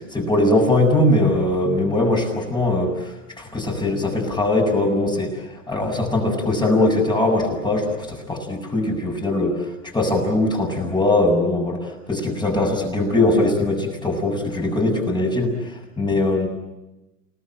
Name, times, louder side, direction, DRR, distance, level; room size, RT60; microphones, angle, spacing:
voice 1, 0.1-9.7 9.9-16.5, left 2 dB, 10° left, 2 dB, 7.2 m, -21 dB
30.0 x 19.0 x 9.1 m, 1.0 s
hypercardioid pair, 105°, 47 cm